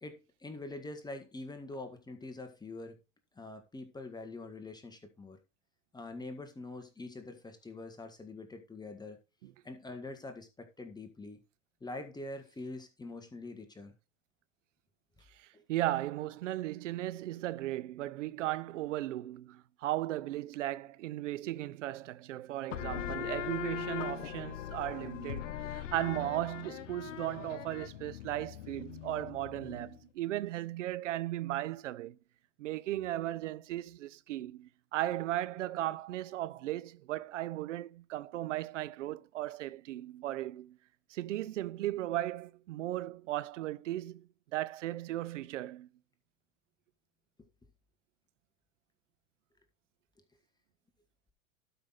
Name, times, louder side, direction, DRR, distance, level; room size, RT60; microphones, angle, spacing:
voice 1, 0.0-3.0 3.4-5.4 5.9-9.2 9.6-11.4 11.8-13.9 15.5-15.6, left 2 dB, 10° left, 1.6 m, -44 dB
voice 2, 15.4-32.2 32.6-40.8 41.1-45.9, right 14 dB, 80° right, 0.7 m, -36 dB
sound 1, 22.7-30.0, left 11 dB, 85° left, 0.9 m, -41 dB
12.0 x 5.8 x 4.1 m
hypercardioid pair, 105°, 37 cm